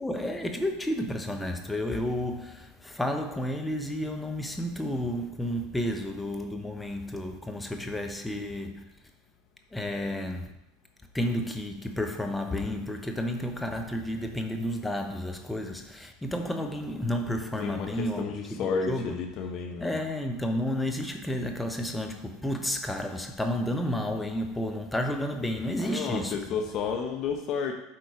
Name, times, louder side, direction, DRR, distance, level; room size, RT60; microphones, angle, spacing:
voice 1, 0.0-8.8 9.7-10.5 11.1-18.3 18.5-19.1 19.8-26.4, left 1 dB, 5° left, 0.9 m, -31 dB
voice 2, 17.6-20.0 25.8-27.7, left 6 dB, 45° left, 1.0 m, -31 dB
7.6 x 4.4 x 4.9 m
hypercardioid pair, 85°, 0 cm